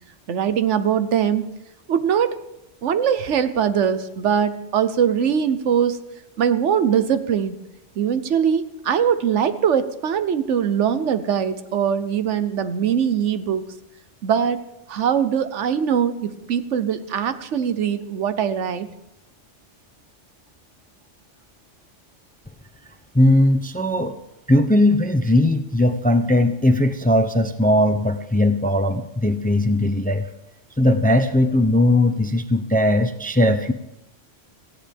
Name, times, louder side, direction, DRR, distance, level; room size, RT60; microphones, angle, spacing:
voice 1, 0.3-1.5 1.9-2.4 2.8-6.0 6.4-7.6 8.0-13.7 14.2-14.6 14.9-18.9, right 8 dB, 85° right, 12 dB, 1.2 m, -21 dB
voice 2, 23.1-24.2 24.5-30.3 30.8-33.7, left 1 dB, 10° left, 9 dB, 0.5 m, -18 dB
18.0 x 15.0 x 3.5 m, 0.89 s
omnidirectional pair, 1.2 m